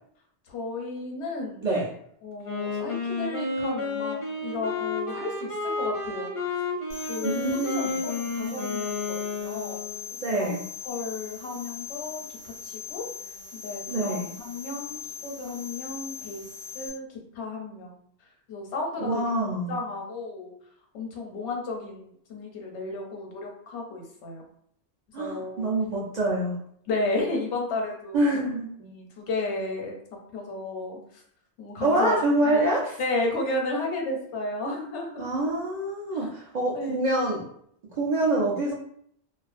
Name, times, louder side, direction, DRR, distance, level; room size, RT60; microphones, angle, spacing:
voice 1, 0.5-1.7 2.2-6.3 7.1-9.8 10.3-10.5 10.8-13.0 13.5-16.4 16.7-18.0 18.5-19.2 19.7-20.5 20.9-24.4 25.2-25.7 26.9-28.4 28.8-29.9 30.3-31.2 31.6-32.2 32.4-32.7 33.0-35.3 36.1-36.3 36.7-36.9, left 2 dB, 85° left, 1 dB, 0.9 m, -33 dB
Wind instrument woodwind instrument, 2.4-10.1, left 3 dB, 45° left, 0.5 m, -31 dB
sound 1, 6.9-16.9, left 6 dB, 90° right, 1.0 m, -40 dB
voice 2, 7.2-8.0 10.2-10.6 13.9-14.3 19.0-19.7 25.1-26.6 28.1-28.7 31.8-33.0 35.2-37.5 37.9-38.7, right 1 dB, 55° right, -4 dB, 0.5 m, -26 dB
2.4 x 2.1 x 2.4 m, 0.67 s
omnidirectional pair, 1.1 m